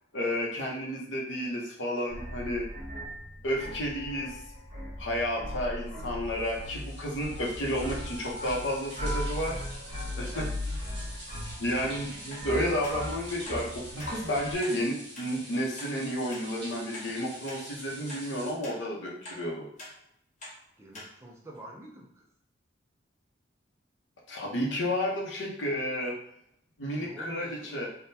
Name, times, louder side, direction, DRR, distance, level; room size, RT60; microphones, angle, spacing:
voice 1, 0.1-2.6 3.4-4.4 5.0-9.6 10.2-10.8 11.6-19.6 24.3-26.1 26.8-27.9, equal, 75° left, -2 dB, 0.8 m, -31 dB
sound 1, 2.1-14.5, equal, 35° right, 1.0 m, -38 dB
sound 2, 6.2-18.5, right 1 dB, 60° right, 1.3 m, -46 dB
voice 2, 10.1-10.4 20.8-22.2 27.0-27.7, right 1 dB, 15° right, -1 dB, 0.5 m, -48 dB
sound 3, 12.3-12.5 12.8-13.0 13.4-13.6 14.0-14.1 14.6-14.8 15.1-15.3 15.8-15.9 16.3-16.4 16.9-17.1 17.5-17.6 18.1-18.2 18.6-18.8 19.2-19.4 19.8-19.9 20.4-20.6 20.9-21.1 21.6-21.7, left 1 dB, 40° left, 0.8 m, -44 dB
3.6 x 2.2 x 2.7 m, 0.73 s
head